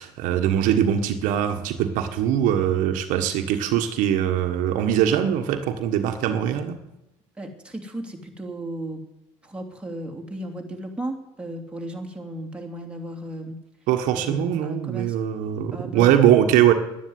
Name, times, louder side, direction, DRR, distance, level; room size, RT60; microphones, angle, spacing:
voice 1, 0.0-6.8 13.9-16.7, right 10 dB, 70° right, 6 dB, 1.5 m, -22 dB
voice 2, 7.4-9.1 9.4-13.6 14.1-15.2 15.7-16.2, right 1 dB, 10° right, 2 dB, 2.8 m, -35 dB
11.0 x 10.5 x 9.6 m, 0.90 s
supercardioid pair, 110°, 14 cm